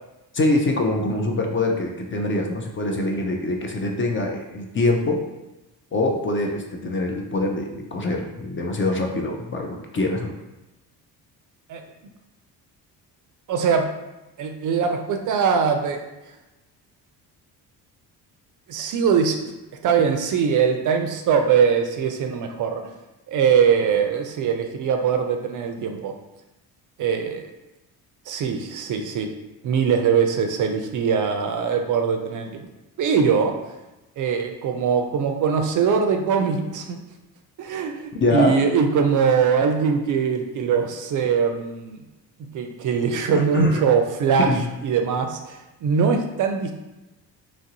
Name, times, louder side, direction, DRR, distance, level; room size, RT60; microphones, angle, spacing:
voice 1, 0.3-5.2 5.9-10.3 38.2-38.6 43.3-43.8 44.4-44.6, left 2 dB, 30° left, 2 dB, 0.4 m, -24 dB
voice 2, 13.5-13.9 14.4-16.0 18.7-19.4 19.8-22.8 23.3-26.1 27.0-27.5 28.3-29.3 29.6-32.7 33.0-33.5 34.2-37.0 37.6-42.0 42.5-44.5 44.8-46.7, right 6 dB, 50° right, 5 dB, 0.4 m, -22 dB
3.0 x 2.6 x 2.8 m, 1.0 s
supercardioid pair, 80°, 41 cm